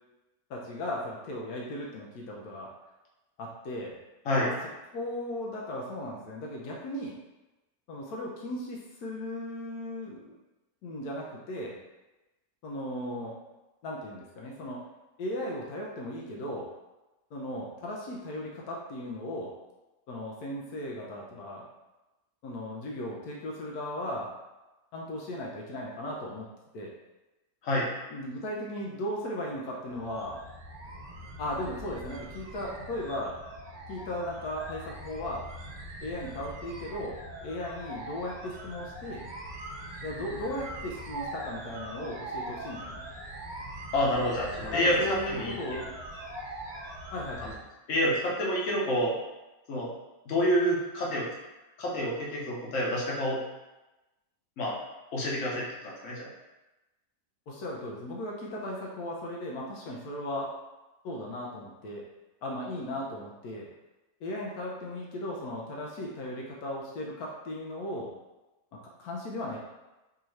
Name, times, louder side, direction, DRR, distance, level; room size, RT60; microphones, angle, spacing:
voice 1, 0.5-2.7 3.4-3.9 4.4-4.5 4.9-7.2 7.9-10.3 10.8-11.8 12.6-13.4 13.8-14.8 15.2-16.7 17.3-19.5 20.1-21.7 22.4-24.3 24.9-26.5 26.7-26.9 28.1-30.4 31.4-33.4 33.9-35.5 36.0-39.3 40.0-43.0 44.7-46.0 47.1-47.6 57.5-60.5 61.0-62.0 62.4-63.7 64.2-68.1 68.7-69.6, left 1 dB, 85° left, -3 dB, 1.2 m, -36 dB
sound 1, 29.9-47.6, right 1 dB, 55° right, 1.1 m, -42 dB
voice 2, 43.9-45.8 47.4-47.5 47.9-49.2 49.7-49.9 50.3-51.3 51.8-53.4 54.6-54.8 55.1-56.3, equal, 55° left, -4 dB, 1.3 m, -28 dB
4.6 x 2.8 x 3.1 m, 1.0 s
omnidirectional pair, 1.6 m